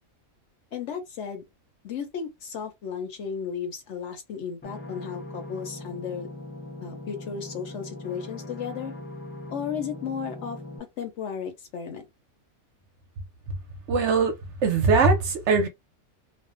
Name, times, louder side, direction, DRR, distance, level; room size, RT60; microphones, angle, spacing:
voice 1, 0.7-1.4 1.8-6.3 6.8-8.9 9.5-10.6 11.0-12.0, left 7 dB, 65° left, 0.8 m, -34 dB
sound 1, 4.6-10.8, left 2 dB, 20° left, 0.3 m, -40 dB
voice 2, 13.9-14.3 14.6-15.7, right 4 dB, 65° right, 0.8 m, -21 dB
2.5 x 2.0 x 2.4 m
omnidirectional pair, 1.5 m